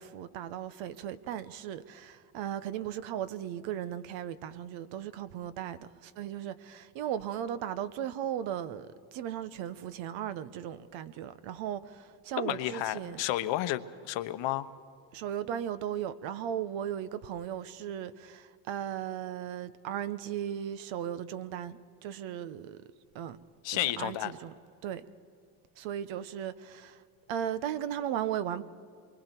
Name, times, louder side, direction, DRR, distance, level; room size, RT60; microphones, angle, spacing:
voice 1, 0.0-13.2 15.1-22.8 23.1-23.4 23.7-24.5 24.8-25.0 25.8-27.0 27.3-28.6, right 10 dB, 75° right, 1.0 m, -36 dB
voice 2, 12.4-14.7 23.6-24.3, left 14 dB, 70° left, 1.0 m, -32 dB
26.5 x 23.5 x 4.5 m
supercardioid pair, 85°, 46 cm